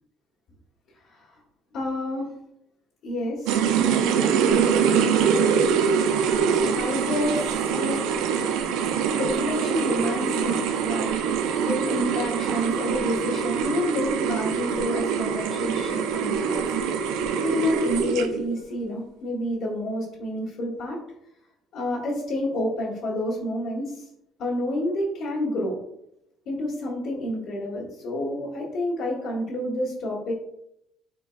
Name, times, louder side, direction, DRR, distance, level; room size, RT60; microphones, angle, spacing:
voice 1, 1.7-2.3 3.0-3.6 6.7-8.0 9.2-11.4 11.6-16.6 17.4-21.0 21.7-24.0 24.4-25.8 26.4-30.3, left 1 dB, 65° left, -7 dB, 1.3 m, -29 dB
sound 1, 3.5-18.5, right 7 dB, 85° right, 0.4 m, -24 dB
4.4 x 4.0 x 2.3 m, 0.79 s
cardioid pair, 140°, 0 cm